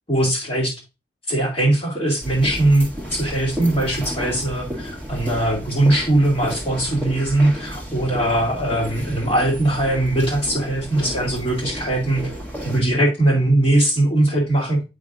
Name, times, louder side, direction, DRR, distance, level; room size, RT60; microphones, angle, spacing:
voice 1, 0.1-0.7 1.3-12.3 12.6-14.9, right 1 dB, 35° left, -2 dB, 2.4 m, -20 dB
sound 1, 2.2-12.8, equal, 10° left, 1.6 m, -32 dB
8.1 x 5.4 x 2.5 m, 0.27 s
head